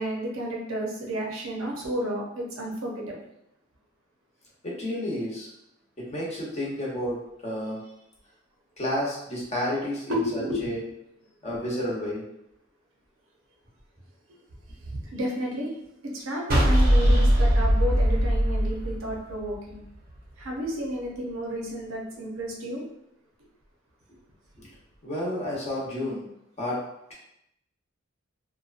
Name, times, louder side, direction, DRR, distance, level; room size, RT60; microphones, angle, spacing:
voice 1, 0.0-3.2 7.0-7.1 10.1-10.8 11.6-11.7 14.8-15.7 16.0-19.8 20.4-22.8, equal, 90° right, -1 dB, 0.7 m, -32 dB
voice 2, 4.6-5.5 6.0-7.8 8.8-10.8 11.4-12.2 25.0-26.2 26.6-26.8, left 1 dB, 35° left, -5 dB, 0.8 m, -31 dB
sound 1, 16.5-19.7, equal, 45° right, 0.6 m, -20 dB
2.6 x 2.2 x 2.4 m, 0.82 s
head